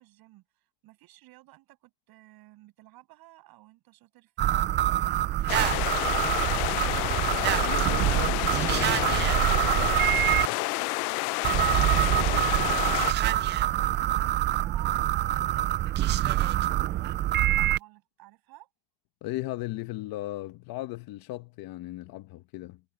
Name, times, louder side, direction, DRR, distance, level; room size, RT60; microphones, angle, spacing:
voice 1, 0.0-6.1 13.0-15.8 16.1-18.7, right 18 dB, 55° right, 7.5 m, -54 dB
sound 1, 4.4-10.5 11.4-17.8, right 13 dB, 25° right, 0.3 m, -25 dB
sound 2, 5.5-13.1, left 24 dB, 80° left, 0.8 m, -29 dB
voice 2, 7.3-10.2 10.5-10.9 19.2-22.8, left 17 dB, 50° left, 1.6 m, -38 dB
supercardioid pair, 135°, 44 cm